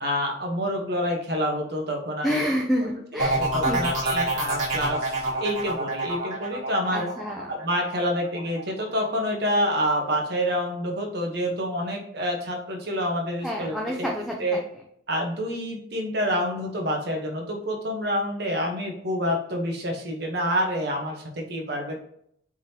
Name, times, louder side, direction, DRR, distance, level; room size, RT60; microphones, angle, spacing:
voice 1, 0.0-2.5 3.1-7.1 7.5-14.1 14.4-14.6 15.1-22.0, equal, 55° right, 1 dB, 1.0 m, -27 dB
voice 2, 2.2-3.9 6.9-7.5 13.4-14.4, equal, ahead, -2 dB, 0.5 m, -28 dB
sound 1, 3.2-8.8 9.2-9.7, right 2 dB, 35° right, 1.6 m, -27 dB
4.8 x 3.7 x 2.8 m, 0.68 s
head